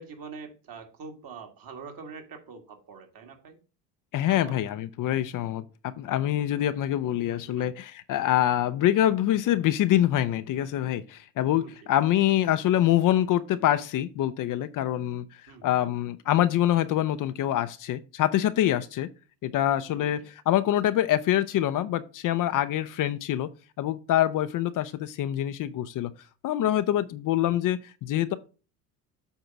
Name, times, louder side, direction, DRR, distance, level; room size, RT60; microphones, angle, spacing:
voice 1, 0.0-3.6 4.3-4.6 7.4-7.7 11.6-11.7 15.5-15.8 19.9-20.1 27.5-27.6, right 5 dB, 45° right, 2.0 m, -44 dB
voice 2, 4.1-19.1 19.4-23.5 23.8-26.1 26.4-28.3, left 12 dB, 45° left, 0.6 m, -25 dB
8.1 x 3.7 x 5.7 m
hypercardioid pair, 80°, 48 cm